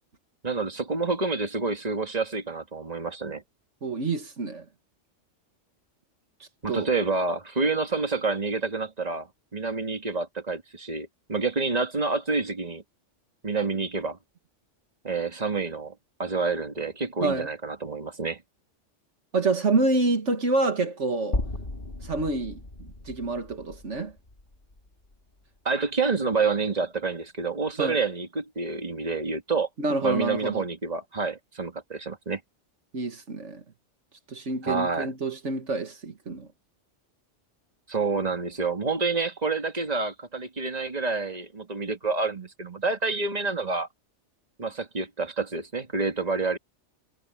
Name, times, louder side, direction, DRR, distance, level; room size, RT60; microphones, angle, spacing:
voice 1, 0.4-3.4 6.6-12.8 13.4-14.2 15.0-15.9 16.2-18.4 25.6-29.7 30.0-32.4 34.6-35.1 37.9-43.9 44.6-46.6, right 4 dB, 35° right, 2.3 m, -28 dB
voice 2, 3.8-4.7 6.7-6.9 17.2-17.5 19.3-21.4 22.0-24.1 27.8-28.0 29.8-30.7 32.9-33.6 34.3-36.5, right 3 dB, 75° right, 2.0 m, -27 dB
sound 1, 21.3-25.6, left 2 dB, 45° left, 2.8 m, -36 dB
omnidirectional pair, 1.2 m